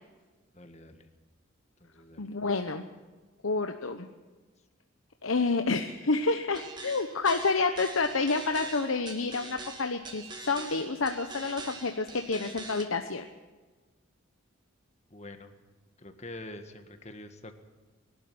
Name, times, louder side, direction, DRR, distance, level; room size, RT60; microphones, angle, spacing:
voice 1, 0.5-1.1 1.8-2.2 15.1-15.5 16.0-17.5, left 1 dB, 35° left, 7 dB, 1.9 m, -45 dB
voice 2, 2.2-2.9 3.4-4.1 5.2-13.2, left 3 dB, 85° left, 6 dB, 1.0 m, -29 dB
sound 1, 6.5-12.8, right 3 dB, 20° right, 2.1 m, -44 dB
22.5 x 12.5 x 9.7 m, 1.3 s
head